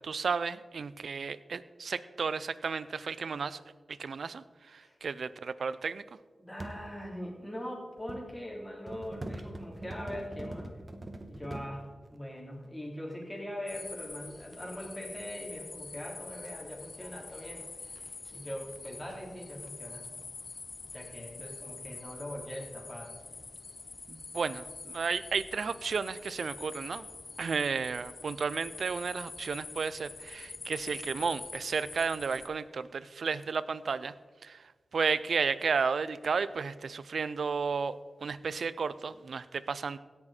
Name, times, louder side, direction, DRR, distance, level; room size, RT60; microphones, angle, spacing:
voice 1, 0.0-3.6 3.9-6.0 24.1-27.1 27.4-34.1 34.4-40.0, right 5 dB, 80° right, 16 dB, 0.4 m, -33 dB
voice 2, 6.4-10.8 11.3-20.0 20.9-23.2, equal, 15° left, -2 dB, 3.8 m, -42 dB
sound 1, 6.6-6.8 7.7-8.3 8.9-11.7 13.1-13.2 13.9-14.6 15.6-15.7 16.0-16.1 16.4-16.5 17.2-18.8 19.1-19.2 19.5-19.7 20.0-20.2, right 1 dB, 40° right, 1.3 m, -43 dB
sound 2, 13.7-32.5, left 4 dB, 60° left, 0.6 m, -46 dB
16.5 x 6.6 x 4.4 m, 1.4 s
cardioid pair, 45°, 0 cm